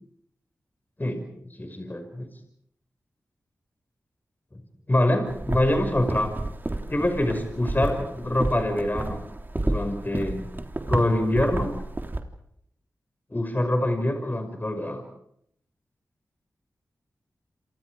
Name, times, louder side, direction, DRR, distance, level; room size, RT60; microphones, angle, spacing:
voice 1, 1.5-2.3 4.9-6.3 6.9-9.2 9.5-10.4 10.9-11.8 13.3-15.0, left 1 dB, 30° left, 6 dB, 5.6 m, -25 dB
sound 1, 5.3-12.2, right 2 dB, 30° right, 3.4 m, -31 dB
28.5 x 27.5 x 5.0 m, 0.73 s
cardioid pair, 45°, 6 cm